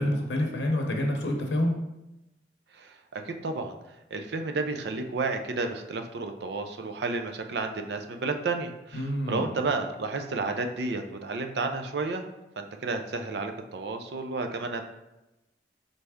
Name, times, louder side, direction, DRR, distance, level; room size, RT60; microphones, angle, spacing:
voice 1, 0.0-1.7 8.9-9.6, left 1 dB, 90° left, 2 dB, 0.7 m, -27 dB
voice 2, 2.7-3.8 4.1-12.3 12.6-14.8, right 3 dB, 70° right, 6 dB, 0.4 m, -31 dB
4.0 x 3.3 x 3.5 m, 0.95 s
head